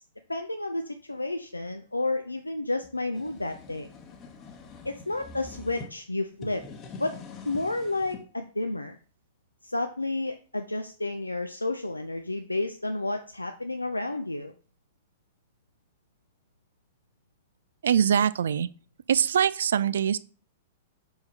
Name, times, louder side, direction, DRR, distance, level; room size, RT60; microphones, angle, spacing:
voice 1, 0.3-3.9 4.8-6.6 7.0-7.1 7.4-9.0 9.6-14.5, left 2 dB, 90° left, 0.4 m, -31 dB
sound 1, 2.8-5.9 6.3-8.2, left 4 dB, 30° left, 1.0 m, -44 dB
voice 2, 17.8-18.7 19.1-20.2, right 8 dB, 65° right, 0.3 m, -23 dB
4.9 x 4.7 x 4.1 m
figure-of-eight pair, 105°, 0 cm